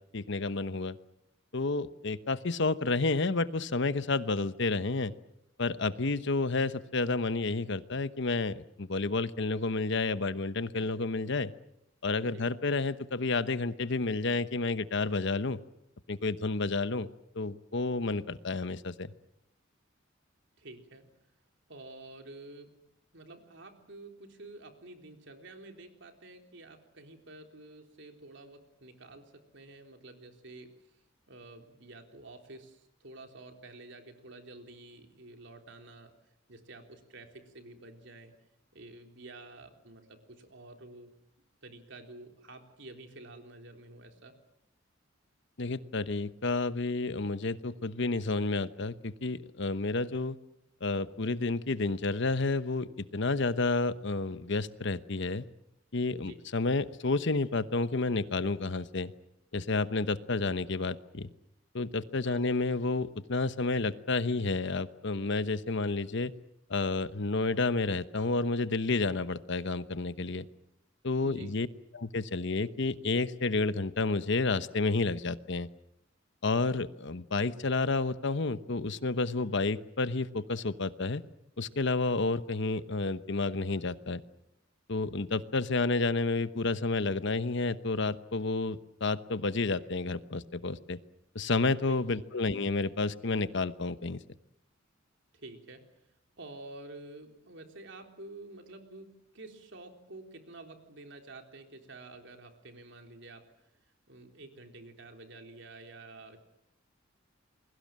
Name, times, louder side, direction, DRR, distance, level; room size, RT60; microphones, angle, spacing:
voice 1, 0.1-1.0 1.5-5.1 5.6-11.5 12.0-15.6 16.1-17.1 17.3-19.1 45.6-50.4 50.8-55.4 55.9-59.1 59.5-61.3 61.7-66.3 66.7-70.4 71.0-71.7 71.9-75.7 76.4-81.2 81.6-84.2 84.9-91.0 91.3-94.2, left 3 dB, 65° left, 13 dB, 1.0 m, -30 dB
voice 2, 20.6-21.1 21.7-22.7 23.1-30.7 31.3-36.1 36.5-38.3 38.7-41.1 41.6-44.4 56.1-56.4 62.2-62.5 71.2-71.5 91.9-92.2 95.3-95.9 96.4-103.7 104.1-106.4, right 2 dB, 65° right, 5 dB, 3.7 m, -49 dB
29.0 x 22.0 x 7.6 m, 0.79 s
head